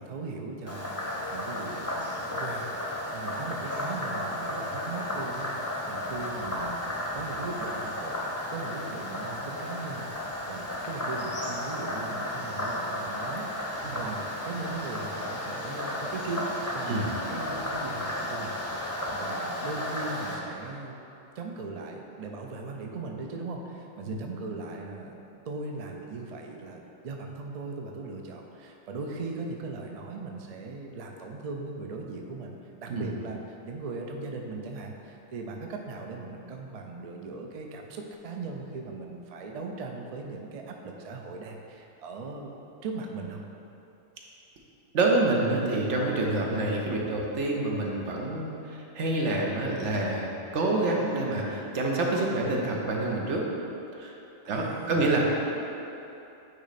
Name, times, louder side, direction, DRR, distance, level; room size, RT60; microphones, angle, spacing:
voice 1, 0.0-8.1 8.5-10.1 10.4-16.5 16.7-17.0 17.3-21.0 21.4-25.1 25.5-32.5 32.8-42.5 42.8-43.4 50.9-51.1 54.4-55.1, right 3 dB, 50° right, 1 dB, 0.5 m, -39 dB
Frog, 0.7-20.4, left 1 dB, 15° left, 0.7 m, -33 dB
voice 2, 44.9-53.5 53.9-54.1 54.5-55.3, right 2 dB, 80° right, -1 dB, 1.1 m, -27 dB
9.3 x 3.1 x 4.1 m, 2.9 s
omnidirectional pair, 1.2 m